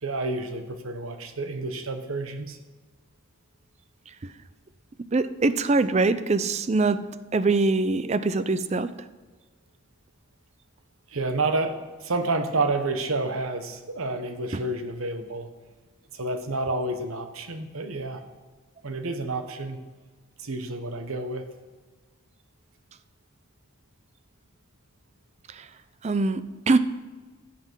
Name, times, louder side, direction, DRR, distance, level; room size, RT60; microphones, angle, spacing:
voice 1, 0.0-2.6 11.1-15.5 16.1-18.2 18.8-19.8 20.4-21.4, right 2 dB, 85° right, 7 dB, 1.1 m, -29 dB
voice 2, 5.1-7.0 7.3-8.9 14.5-14.6 25.5-25.7 26.0-26.8, right 3 dB, 30° right, 13 dB, 0.4 m, -23 dB
16.0 x 6.0 x 4.6 m, 1.3 s
head